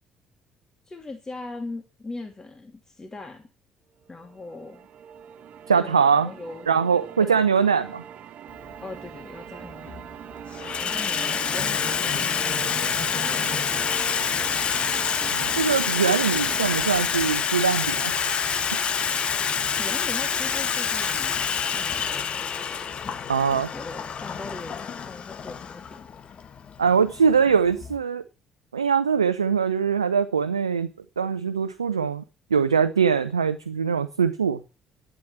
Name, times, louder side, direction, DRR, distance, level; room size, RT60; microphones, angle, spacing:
voice 1, 0.9-3.5 4.1-4.9 5.7-6.7 7.2-7.3 8.8-10.0 10.8-14.5 19.8-21.4 21.7-22.3 22.9-26.1, left 3 dB, 20° left, 4 dB, 2.9 m, -40 dB
sound 1, 4.1-16.9, right 8 dB, 50° right, 1.2 m, -41 dB
voice 2, 5.7-6.3 6.7-8.0 15.3-18.4 23.3-23.7 26.8-28.2 28.7-30.9 31.2-32.2 32.5-34.6, right 6 dB, 80° right, 11 dB, 0.7 m, -22 dB
Water tap faucet / Sink (filling or washing), 8.6-8.7 9.7-10.1 10.4-28.0, left 7 dB, 40° left, 1.6 m, -27 dB
11.5 x 9.1 x 7.5 m, 0.32 s
figure-of-eight pair, 50°, 3 cm